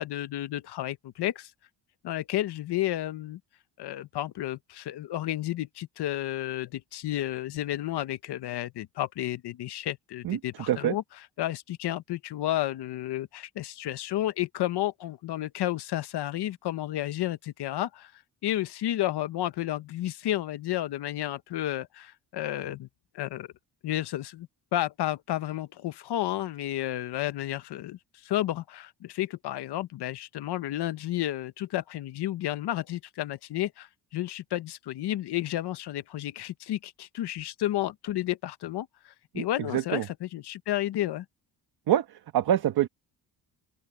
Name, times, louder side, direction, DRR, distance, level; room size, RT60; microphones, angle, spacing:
voice 1, 0.0-1.5 2.0-3.4 3.8-11.0 11.4-18.1 18.4-22.9 23.1-23.5 23.8-41.2, left 14 dB, 70° left, 1.0 m, -32 dB
voice 2, 10.2-10.9 39.3-39.4 39.7-40.1 41.9-42.9, right 11 dB, 65° right, 1.4 m, -26 dB
open air
cardioid pair, 165°, 41 cm